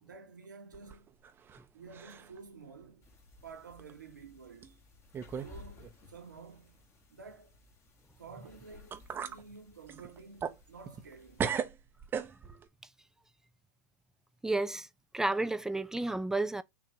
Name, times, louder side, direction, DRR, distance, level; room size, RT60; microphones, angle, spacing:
voice 1, 0.0-1.1 1.7-3.1 3.4-4.8 5.4-6.8 7.1-7.6 8.2-11.5, right 4 dB, 80° right, 1.4 m, -51 dB
sound 1, 0.7-1.6 1.9-2.4 2.8-2.9 3.8-3.9 4.6-4.7 5.1-5.5 5.8-5.9 8.5-8.6 8.9-9.4 9.9-11.1 11.4-12.7, right 7 dB, 20° right, 0.7 m, -37 dB
sound 2, 3.0-11.5, left 3 dB, 25° left, 1.3 m, -58 dB
voice 2, 14.4-14.9 15.1-16.6, right 2 dB, 5° right, 0.3 m, -31 dB
6.5 x 2.5 x 3.2 m
figure-of-eight pair, 100°, 10 cm